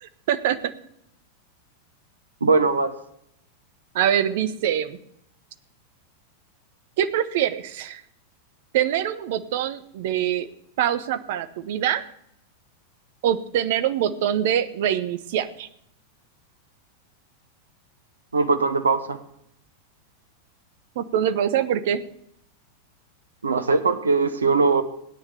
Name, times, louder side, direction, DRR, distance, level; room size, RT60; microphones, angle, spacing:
voice 1, 0.0-0.7 3.9-5.0 7.0-8.0 8.7-10.5 10.8-12.0 13.2-15.7 20.9-22.0, right 10 dB, 55° right, 12 dB, 1.2 m, -24 dB
voice 2, 2.4-2.9 18.3-19.2 23.4-24.8, right 4 dB, 75° right, 10 dB, 1.4 m, -20 dB
17.0 x 10.0 x 6.9 m, 0.72 s
figure-of-eight pair, 90°, 0 cm